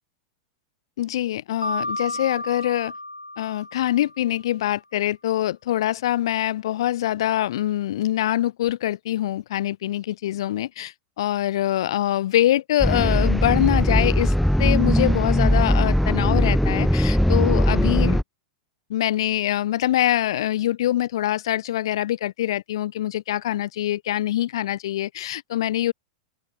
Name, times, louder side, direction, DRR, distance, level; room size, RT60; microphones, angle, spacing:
voice 1, 1.0-2.9 3.4-14.3 14.6-18.2 18.9-25.9, left 13 dB, 60° left, 1.6 m, -24 dB
Mallet percussion, 1.6-4.4, left 2 dB, 85° left, 3.2 m, -32 dB
sound 1, 12.8-18.2, equal, ahead, 0.8 m, -20 dB
open air
figure-of-eight pair, 90°, 3 cm